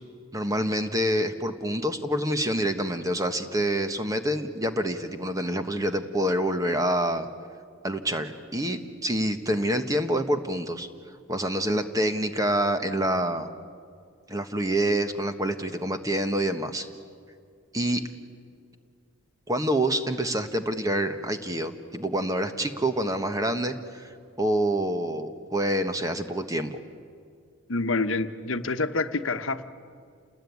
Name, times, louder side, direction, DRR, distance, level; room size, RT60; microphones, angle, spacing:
voice 1, 0.3-7.3 7.8-10.9 11.3-13.5 14.3-16.9 17.7-18.0 19.5-26.8, right 1 dB, 15° right, 8 dB, 1.3 m, -27 dB
voice 2, 27.7-29.6, left 3 dB, 70° left, 9 dB, 1.1 m, -27 dB
28.5 x 20.5 x 9.5 m, 2.2 s
head